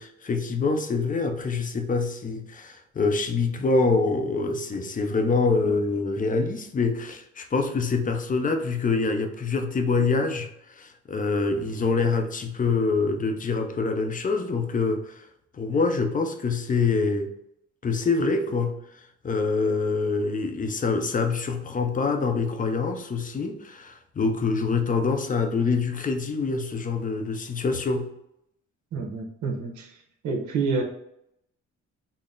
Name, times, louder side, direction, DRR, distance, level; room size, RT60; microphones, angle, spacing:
voice 1, 0.0-15.2 15.5-17.3 17.8-18.8 19.2-28.1, left 4 dB, 25° left, 5 dB, 0.6 m, -25 dB
voice 2, 28.9-29.9 30.2-30.8, right 4 dB, 70° right, 3 dB, 1.0 m, -28 dB
4.0 x 2.1 x 3.7 m, 0.77 s
cardioid pair, 90°, 30 cm